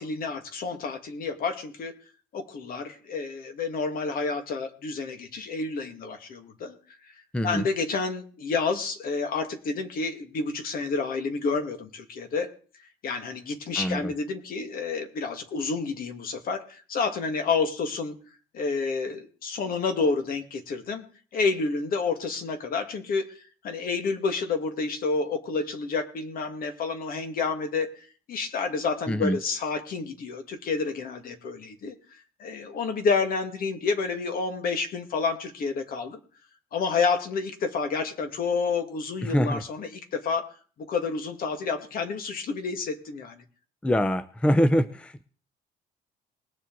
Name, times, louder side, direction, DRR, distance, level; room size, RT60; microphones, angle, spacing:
voice 1, 0.0-1.9 2.3-6.8 7.1-7.2 7.4-12.5 13.0-18.1 18.5-21.1 21.3-27.9 28.3-31.9 32.4-36.2 36.7-40.5 40.8-43.4, left 4 dB, 60° left, 7 dB, 2.0 m, -29 dB
voice 2, 7.3-7.7 13.8-14.1 29.1-29.4 39.2-39.6 43.8-45.2, equal, 5° left, 14 dB, 0.6 m, -24 dB
20.0 x 7.3 x 4.0 m, 0.41 s
cardioid pair, 110°, 17 cm